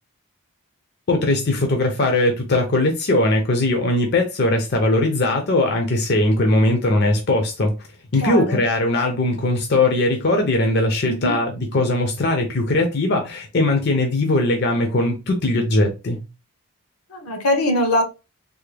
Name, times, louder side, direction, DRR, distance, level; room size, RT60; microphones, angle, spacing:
voice 1, 1.1-7.7 8.1-16.2, left 2 dB, 50° left, 0.5 m, -20 dB
voice 2, 8.2-8.6 11.1-11.4 17.1-18.0, left 1 dB, 80° left, 0.9 m, -22 dB
3.4 x 2.1 x 3.2 m
head